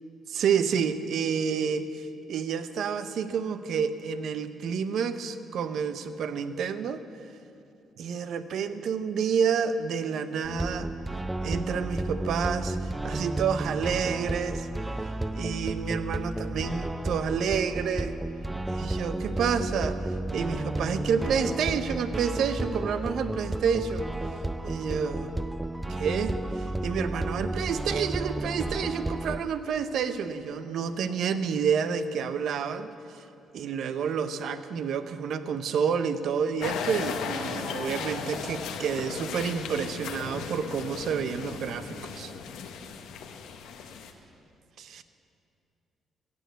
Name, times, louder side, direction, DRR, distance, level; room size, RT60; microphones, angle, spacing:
voice 1, 0.3-7.0 8.0-10.9 11.4-14.7 15.3-18.1 18.7-20.0 20.3-24.1 24.6-25.3 25.9-33.2 33.5-42.3 44.8-45.0, right 6 dB, 70° right, 11 dB, 0.7 m, -29 dB
sound 1, 10.4-29.4, right 1 dB, 15° right, 0.4 m, -32 dB
sound 2, 19.0-33.9, left 1 dB, 55° right, 2.4 m, -51 dB
sound 3, 36.6-44.1, left 6 dB, 85° left, 0.9 m, -36 dB
15.5 x 7.0 x 8.1 m, 2.7 s
cardioid pair, 90°, 0 cm